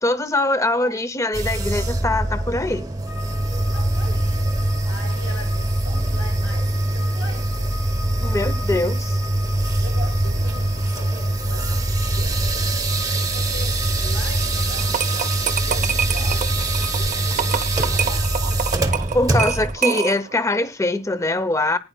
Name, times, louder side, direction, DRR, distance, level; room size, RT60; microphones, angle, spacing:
voice 1, 0.0-2.9 8.2-9.2 19.1-21.8, left 2 dB, 15° left, 0.6 m, -22 dB
voice 2, 0.7-1.0 3.7-4.4 4.8-8.6 9.8-12.7 13.3-15.3 15.6-16.7 16.9-18.8, left 1 dB, 85° left, 6.0 m, -40 dB
sound 1, 1.3-19.8, right 1 dB, 15° right, 0.9 m, -23 dB
sound 2, 3.1-18.9, left 4 dB, 65° left, 5.9 m, -40 dB
sound 3, 14.8-20.4, right 7 dB, 35° right, 0.6 m, -26 dB
20.5 x 10.0 x 2.2 m
head